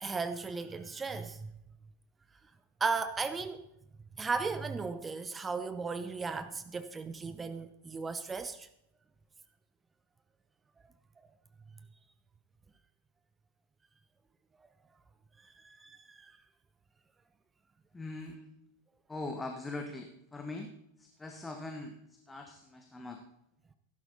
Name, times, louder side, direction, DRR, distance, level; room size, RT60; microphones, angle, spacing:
voice 1, 0.0-1.5 2.8-3.6 4.2-8.7 15.4-16.4, right 4 dB, 15° right, 12 dB, 0.7 m, -36 dB
voice 2, 17.9-18.5 19.1-20.7 21.0-23.2, left 2 dB, 10° left, 4 dB, 1.3 m, -42 dB
17.0 x 11.5 x 4.1 m, 0.80 s
figure-of-eight pair, 90°, 0 cm